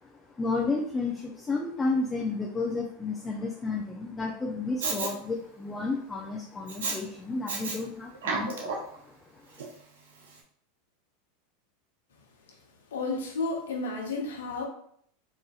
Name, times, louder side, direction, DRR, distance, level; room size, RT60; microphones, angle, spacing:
voice 1, 0.4-8.8, left 3 dB, 20° left, 0 dB, 0.5 m, -31 dB
Respiratory sounds, 4.8-5.1 6.7-7.0 7.5-7.8 8.1-9.0 9.6-9.7, right 4 dB, 85° right, 0.7 m, -31 dB
voice 2, 12.9-14.6, left 3 dB, 85° left, 1 dB, 0.9 m, -32 dB
4.1 x 2.6 x 2.4 m, 0.64 s
hypercardioid pair, 105°, 0 cm